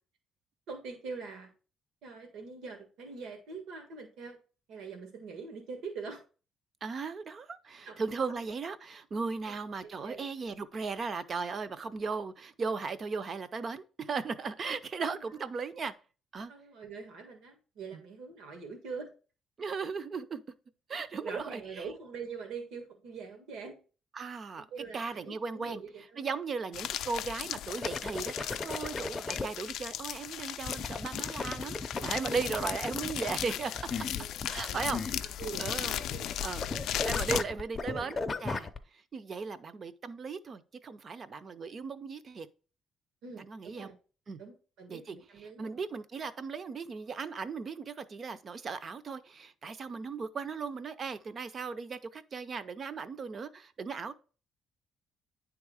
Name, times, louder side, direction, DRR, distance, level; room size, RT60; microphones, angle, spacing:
voice 1, 0.7-1.5 2.0-4.4 4.7-6.2 7.8-8.0 8.3-8.4 9.5-9.6 10.0-10.3 14.7-15.4 16.5-19.1 21.2-23.8 24.6-26.3 31.2-31.4 34.2-34.9 35.2-36.5 37.8-38.3 43.2-43.9 44.4-45.8, right 5 dB, 80° right, 1.6 m, -44 dB
voice 2, 6.8-15.9 16.3-16.5 17.9-18.0 19.6-20.4 20.9-21.9 24.1-24.7 24.9-25.8 26.2-33.8 34.4-35.0 35.6-36.0 36.4-36.6 37.1-42.5 43.4-43.9 44.3-44.4 44.9-45.2 45.6-54.1, right 4 dB, 30° right, 0.5 m, -37 dB
sound 1, 26.7-37.4, left 11 dB, 65° left, 0.4 m, -37 dB
sound 2, 27.8-29.5 30.7-35.8 36.0-36.3 36.6-38.8, left 3 dB, 20° left, 0.5 m, -36 dB
10.0 x 3.6 x 4.8 m
cardioid pair, 180°, 0 cm